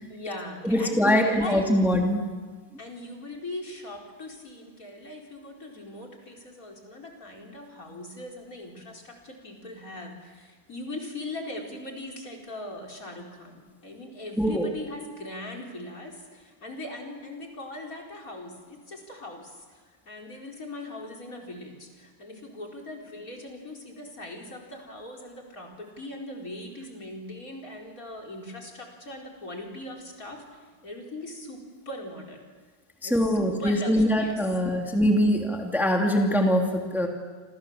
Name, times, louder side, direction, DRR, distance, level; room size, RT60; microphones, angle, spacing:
voice 1, 0.1-1.7 2.8-32.4 33.0-34.5, left 2 dB, 50° left, 0 dB, 4.9 m, -40 dB
voice 2, 0.6-2.3 14.4-14.6 33.0-37.1, equal, ahead, 1 dB, 2.6 m, -23 dB
28.0 x 28.0 x 7.3 m, 1.5 s
omnidirectional pair, 1.9 m